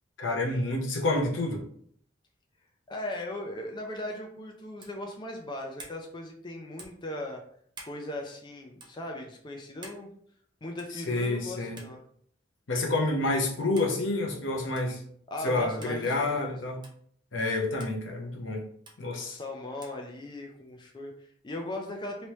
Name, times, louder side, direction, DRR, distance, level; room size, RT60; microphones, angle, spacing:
voice 1, 0.2-1.6 11.1-11.8 12.7-15.0 15.4-16.8 17.3-18.6 19.0-19.4, left 2 dB, 70° left, 2 dB, 0.7 m, -28 dB
voice 2, 2.9-7.4 7.8-10.1 10.6-12.0 15.3-16.7 19.1-22.3, left 1 dB, 25° left, 2 dB, 0.4 m, -38 dB
sound 1, 4.8-5.0 5.8-6.0 6.8-7.0 7.7-8.0 8.8-8.9 9.8-10.0 10.8-11.0 11.8-12.0 12.8-12.9 13.8-14.0 14.7-15.0 15.8-16.0 16.8-17.0 17.8-18.0 18.9-19.0 19.8-20.0, right 2 dB, 25° right, 0.7 m, -48 dB
3.1 x 2.8 x 3.1 m, 0.62 s
head